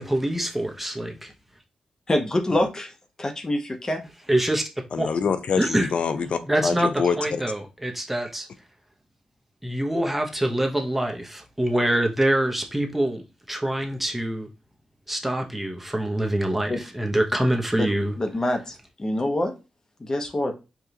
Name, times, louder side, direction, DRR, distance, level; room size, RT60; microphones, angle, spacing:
voice 1, 0.0-1.3 4.3-4.6 5.0-5.1 5.6-5.9 6.5-8.5 9.6-13.2 13.5-14.5 15.1-18.1, right 1 dB, 10° right, 1.0 m, -25 dB
voice 2, 2.1-2.9 3.2-4.1 16.7-16.8 17.8-17.9 18.2-19.5 20.0-20.5, left 1 dB, 30° left, 0.8 m, -25 dB
voice 3, 4.9-7.4, left 5 dB, 65° left, 0.5 m, -25 dB
4.8 x 2.5 x 2.9 m
cardioid pair, 60°, 2 cm